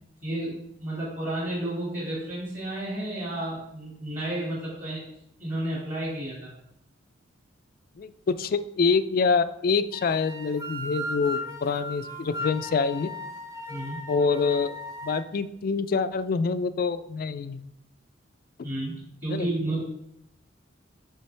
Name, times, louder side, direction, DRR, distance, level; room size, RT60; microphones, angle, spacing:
voice 1, 0.2-5.0 5.4-6.5 13.7-14.0 18.6-18.9 19.2-19.8, right 1 dB, 40° right, -7 dB, 1.9 m, -31 dB
voice 2, 8.0-13.1 14.1-17.7 19.3-19.5, left 4 dB, 50° left, 13 dB, 0.3 m, -26 dB
sound 1, 9.9-15.2, left 1 dB, 15° right, 0.6 m, -37 dB
10.0 x 3.3 x 3.3 m, 0.79 s
head